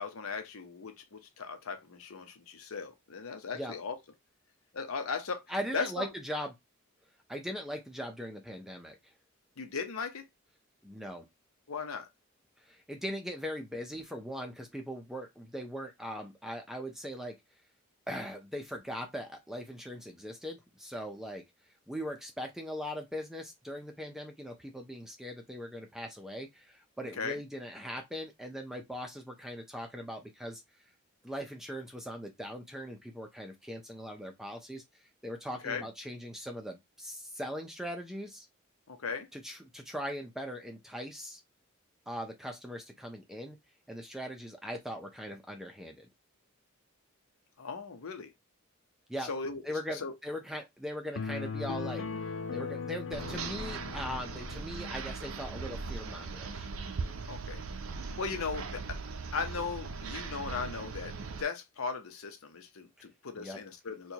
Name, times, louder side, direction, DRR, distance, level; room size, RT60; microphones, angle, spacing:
voice 1, 0.0-4.0 4.7-5.5 5.7-6.1 9.6-10.2 11.7-12.1 27.2-27.4 35.6-35.9 38.9-39.3 47.6-48.3 49.2-49.6 49.9-50.1 57.3-57.6 58.0-59.0 59.3-64.1, left 5 dB, 85° left, 0.8 m, -37 dB
voice 2, 5.5-6.5 7.3-9.1 10.8-11.3 12.6-17.4 18.1-21.4 21.9-30.6 31.2-34.8 35.2-38.5 39.3-41.4 42.1-43.6 43.9-46.1 49.1-49.3 49.6-52.1 52.5-56.7 63.4-63.6, equal, ahead, 0.5 m, -40 dB
sound 1, 51.2-54.7, left 5 dB, 60° left, 0.5 m, -38 dB
sound 2, 53.1-61.4, right 4 dB, 75° right, 0.5 m, -39 dB
4.3 x 2.3 x 2.8 m
head